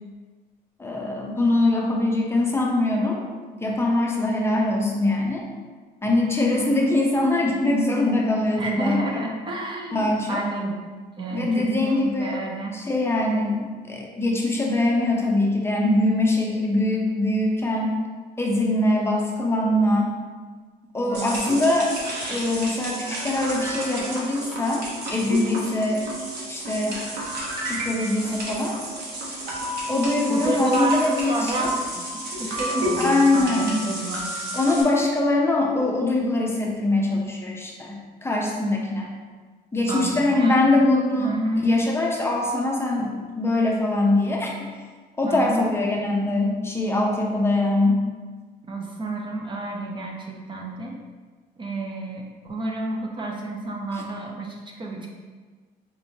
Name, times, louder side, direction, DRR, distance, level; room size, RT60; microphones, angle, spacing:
voice 1, 0.8-3.2 3.6-5.4 6.0-9.2 9.9-10.4 11.3-12.4 12.7-17.9 18.4-20.1 20.9-21.9 22.3-24.8 25.1-26.0 26.5-27.0 27.6-28.8 29.9-31.7 33.0-33.8 34.5-39.1 39.7-44.5 45.2-48.0 53.9-54.0, left 2 dB, 15° left, -2 dB, 0.6 m, -22 dB
voice 2, 6.5-6.9 8.6-10.8 11.2-12.8 21.1-21.6 30.3-34.3 39.9-40.7 41.2-41.7 45.2-45.7 48.7-51.0 51.6-55.1, right 2 dB, 30° right, -1 dB, 0.6 m, -30 dB
sound 1, 21.1-34.8, equal, 80° right, 1.2 m, -31 dB
5.1 x 3.0 x 2.7 m, 1.4 s
cardioid pair, 110°, 17 cm